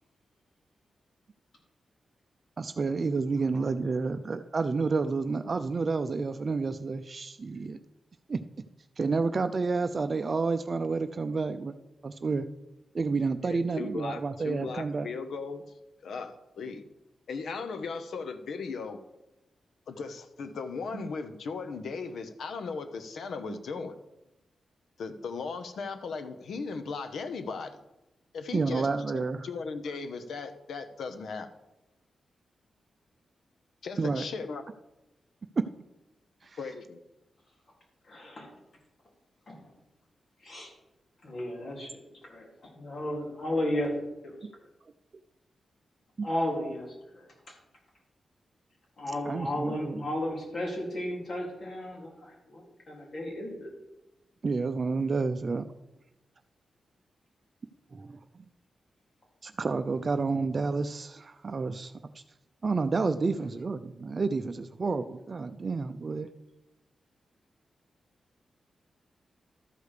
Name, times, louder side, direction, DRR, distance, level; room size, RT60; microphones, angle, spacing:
voice 1, 2.6-7.8 8.3-8.4 9.0-11.7 12.0-12.5 12.9-15.1 28.5-29.5 34.0-34.2 36.4-36.6 46.2-46.3 49.3-50.1 54.4-55.6 57.9-58.2 59.4-61.9 62.6-66.3, right 4 dB, 45° right, 9 dB, 0.5 m, -30 dB
voice 2, 13.4-15.6 16.0-16.8 17.3-19.0 19.9-24.0 25.0-27.8 28.3-28.9 29.1-31.5 33.8-34.6 36.5-37.0, left 4 dB, 85° left, 9 dB, 0.9 m, -37 dB
voice 3, 38.0-38.5 39.5-39.7 40.4-40.7 41.2-43.9 44.2-44.4 46.2-46.9 47.1-47.5 49.0-53.7, left 1 dB, 55° left, -2 dB, 4.0 m, -34 dB
13.0 x 5.0 x 6.6 m, 0.97 s
cardioid pair, 80°, 0 cm